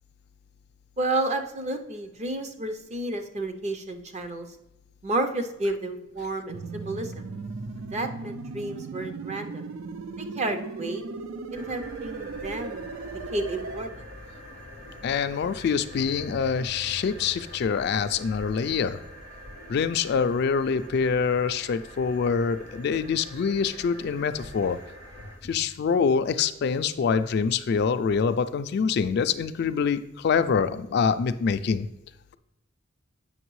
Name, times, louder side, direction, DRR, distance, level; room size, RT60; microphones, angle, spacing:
voice 1, 1.0-4.5 5.0-7.3 7.9-9.7 10.2-11.0 11.5-14.1, right 2 dB, 35° right, 6 dB, 0.6 m, -31 dB
sound 1, 6.5-13.9, right 4 dB, 80° right, 0.4 m, -37 dB
sound 2, 11.5-25.6, left 1 dB, 50° right, 2.5 m, -44 dB
voice 2, 15.0-19.0 19.7-24.8 25.4-31.9, left 6 dB, 55° left, 10 dB, 0.3 m, -25 dB
7.9 x 5.9 x 3.1 m, 0.90 s
head